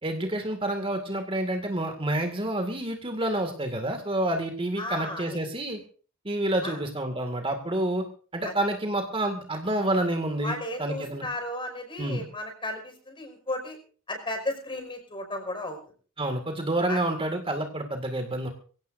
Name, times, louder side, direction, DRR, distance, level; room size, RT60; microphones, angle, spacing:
voice 1, 0.0-5.8 6.2-8.0 8.3-11.3 12.0-12.3 16.2-18.5, right 1 dB, 25° right, 5 dB, 2.1 m, -28 dB
voice 2, 4.8-5.2 6.6-6.8 8.4-8.5 10.4-13.8 14.1-15.8 16.9-17.0, left 1 dB, 25° left, 5 dB, 5.2 m, -34 dB
24.5 x 16.5 x 2.6 m, 0.41 s
head